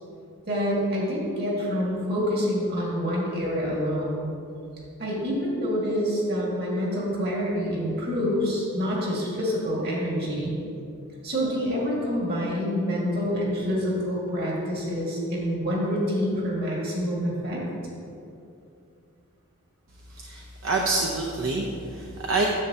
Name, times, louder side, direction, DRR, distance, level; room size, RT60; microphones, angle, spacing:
voice 1, 0.5-4.3 5.0-10.6 11.2-17.6, equal, 45° right, -4 dB, 1.9 m, -27 dB
voice 2, 20.1-22.5, right 3 dB, 65° right, -1 dB, 0.6 m, -27 dB
9.7 x 7.1 x 2.8 m, 2.6 s
head